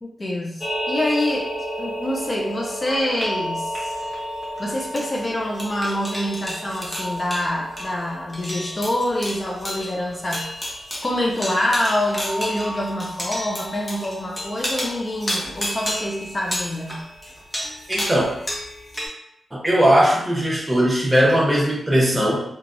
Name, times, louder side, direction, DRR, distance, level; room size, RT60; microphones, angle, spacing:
voice 1, 0.0-3.9 4.6-10.5 11.0-17.0, left 1 dB, 30° left, -1 dB, 0.4 m, -26 dB
sound 1, 0.6-19.1, equal, 15° left, 0.8 m, -31 dB
voice 2, 17.9-18.3 19.5-22.4, equal, 20° right, -3 dB, 0.8 m, -18 dB
3.2 x 2.3 x 2.5 m, 0.75 s
cardioid pair, 85°, 0 cm